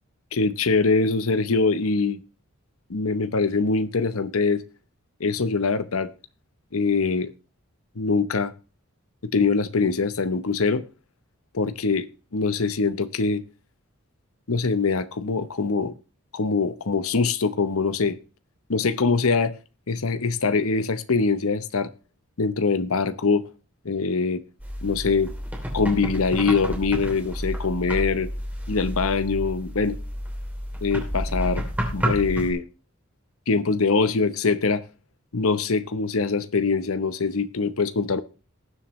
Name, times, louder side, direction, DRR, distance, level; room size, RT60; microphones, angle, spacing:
voice 1, 0.3-2.2 2.9-4.6 5.2-6.1 6.7-7.3 8.0-8.5 9.2-10.8 11.5-12.1 12.3-13.4 14.5-15.9 16.3-18.2 18.7-19.5 19.9-21.9 22.4-23.4 23.8-24.4 24.8-25.3 25.7-28.3 28.7-30.0 30.8-31.6 31.9-32.6 33.5-34.8 35.3-38.2, left 4 dB, 80° left, 0.8 m, -23 dB
sound 1, 24.6-32.5, equal, 5° right, 2.8 m, -30 dB
19.5 x 7.3 x 3.1 m
head